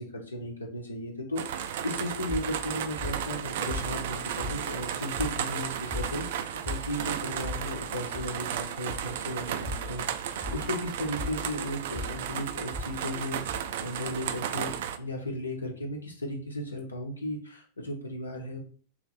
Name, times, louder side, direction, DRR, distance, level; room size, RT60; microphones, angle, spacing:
voice 1, 0.0-18.6, left 1 dB, 80° left, 0 dB, 0.9 m, -35 dB
sound 1, 1.4-15.0, right 9 dB, 55° right, 0.3 m, -34 dB
sound 2, 2.3-14.3, left 3 dB, 5° left, 0.9 m, -40 dB
3.3 x 3.1 x 4.0 m, 0.42 s
figure-of-eight pair, 90°, 0 cm